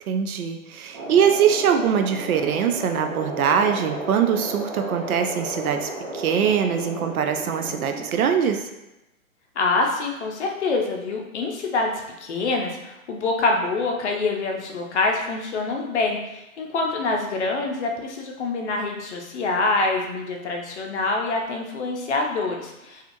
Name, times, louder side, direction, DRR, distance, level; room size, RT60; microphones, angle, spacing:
voice 1, 0.1-5.9 6.1-8.7, right 8 dB, 80° right, 6 dB, 0.5 m, -22 dB
sound 1, 0.9-8.2, right 1 dB, 30° right, 0.7 m, -34 dB
voice 2, 9.6-11.9 12.2-23.0, left 3 dB, 55° left, 1 dB, 0.6 m, -25 dB
2.8 x 2.4 x 2.5 m, 0.95 s
hypercardioid pair, 140°, 42 cm